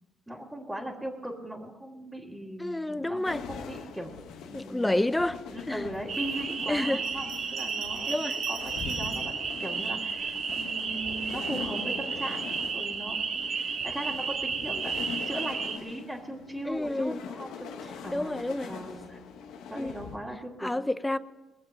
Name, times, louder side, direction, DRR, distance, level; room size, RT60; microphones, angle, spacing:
voice 1, 0.3-4.1 4.4-5.0 5.5-8.2 8.5-18.4 18.6-19.2 19.7-20.7, right 1 dB, 5° right, 2.5 m, -39 dB
voice 2, 2.6-3.4 4.5-5.8 6.7-7.0 8.1-8.4 16.7-17.2 18.1-18.7 19.7-19.9 20.6-21.2, left 1 dB, 10° left, 0.7 m, -29 dB
sound 1, 3.3-20.2, left 6 dB, 90° left, 1.2 m, -42 dB
sound 2, 6.1-15.8, right 5 dB, 55° right, 1.5 m, -32 dB
Bell, 6.9-9.4 10.1-11.0, right 8 dB, 85° right, 5.4 m, -47 dB
21.0 x 7.4 x 7.6 m
cardioid pair, 90°, 0 cm